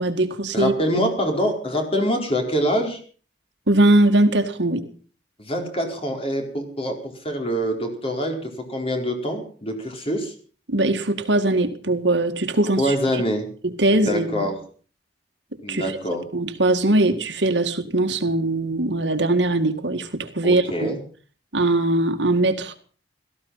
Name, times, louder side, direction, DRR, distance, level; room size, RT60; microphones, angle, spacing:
voice 1, 0.0-0.7 3.7-4.8 10.7-13.2 13.6-14.5 15.7-16.0 16.3-20.9 21.5-22.7, right 2 dB, 75° right, 7 dB, 1.9 m, -21 dB
voice 2, 0.5-3.0 5.4-10.3 12.8-13.5 13.9-14.5 15.6-16.2 20.4-21.0, equal, 35° left, 3 dB, 4.4 m, -25 dB
17.5 x 14.5 x 5.6 m, 0.42 s
head